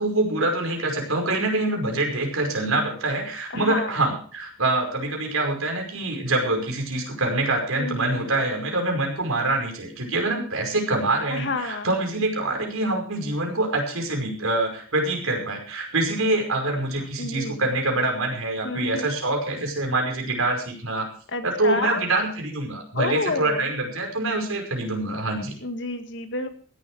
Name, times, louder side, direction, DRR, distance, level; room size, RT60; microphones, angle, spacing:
voice 1, 0.0-21.1 21.4-25.5, right 2 dB, 80° right, 2 dB, 5.4 m, -25 dB
voice 2, 3.7-4.0 7.8-8.4 11.3-11.9 17.2-17.6 18.6-19.1 21.3-22.0 22.9-23.6 25.6-26.6, left 3 dB, 55° left, 7 dB, 2.0 m, -29 dB
16.0 x 11.5 x 4.8 m, 0.42 s
head